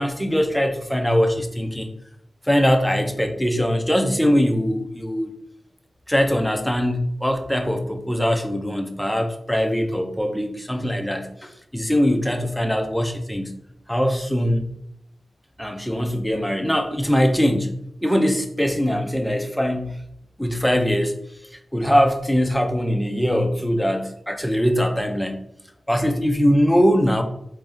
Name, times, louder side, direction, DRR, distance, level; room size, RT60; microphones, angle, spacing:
voice 1, 0.0-1.9 2.5-5.3 6.1-13.6 13.9-14.7 15.6-20.0 20.4-21.1 21.7-25.4 25.9-27.2, equal, 5° left, 5 dB, 0.4 m, -21 dB
3.3 x 2.6 x 3.5 m, 0.74 s
wide cardioid pair, 130°, 0 cm